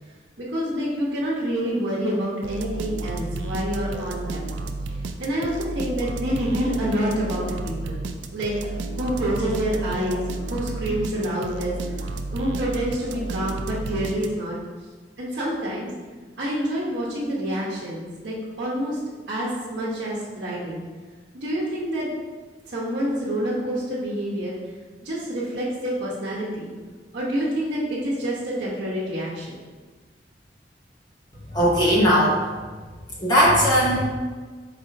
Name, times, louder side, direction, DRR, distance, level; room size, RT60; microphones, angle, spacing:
voice 1, 0.4-4.6 5.2-8.0 8.3-11.7 12.3-14.6 15.2-15.9 16.4-19.0 19.3-20.8 21.3-22.1 22.7-24.6 25.0-26.7 27.1-29.5, equal, 70° right, -7 dB, 0.9 m, -27 dB
sound 1, 2.4-14.6, right 2 dB, 90° right, 0.3 m, -32 dB
voice 2, 31.5-32.4 33.2-34.0, equal, 25° left, -6 dB, 0.8 m, -18 dB
4.8 x 2.5 x 3.9 m, 1.4 s
head